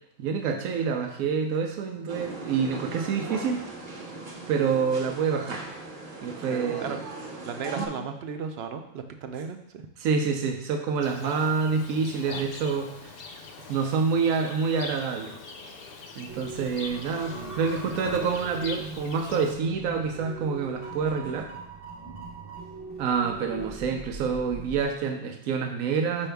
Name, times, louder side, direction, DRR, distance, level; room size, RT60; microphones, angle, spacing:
voice 1, 0.2-3.7 4.5-5.6 6.2-7.0 7.8-7.9 10.0-13.2 13.7-15.4 16.2-21.5 23.0-26.3, right 5 dB, 90° right, 4 dB, 1.1 m, -27 dB
sound 1, 2.1-7.9, right 2 dB, 40° right, 1.0 m, -39 dB
voice 2, 6.5-7.0 7.4-9.8 17.3-17.6, right 6 dB, 65° right, 6 dB, 0.6 m, -35 dB
Livestock farm animals working animals, 11.0-19.5, left 4 dB, 55° left, 0.7 m, -41 dB
sound 2, 16.3-24.8, right 3 dB, 20° right, 0.9 m, -41 dB
5.6 x 5.3 x 3.4 m, 0.78 s
omnidirectional pair, 1.4 m